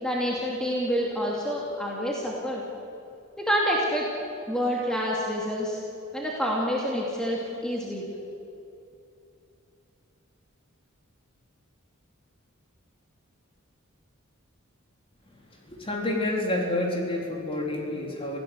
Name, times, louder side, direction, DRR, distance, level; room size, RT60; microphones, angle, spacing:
voice 1, 0.0-2.6 3.4-4.1 4.5-5.8 6.1-8.0, equal, 5° left, -3 dB, 2.7 m, -27 dB
voice 2, 15.7-18.4, left 1 dB, 25° left, 0 dB, 3.9 m, -28 dB
26.5 x 16.5 x 8.1 m, 2.7 s
head